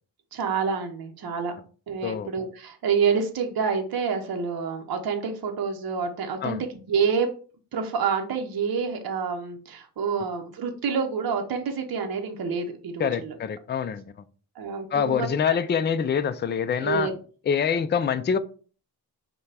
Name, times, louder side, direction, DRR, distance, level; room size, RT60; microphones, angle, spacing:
voice 1, 0.3-1.5 1.9-6.6 6.9-7.3 7.7-13.4 14.6-15.5 16.8-17.1, right 6 dB, 60° right, 0.7 m, -28 dB
voice 2, 13.0-14.1 14.9-17.1 17.5-18.4, left 7 dB, 25° left, 0.3 m, -25 dB
5.6 x 2.2 x 3.3 m
wide cardioid pair, 90°, 42 cm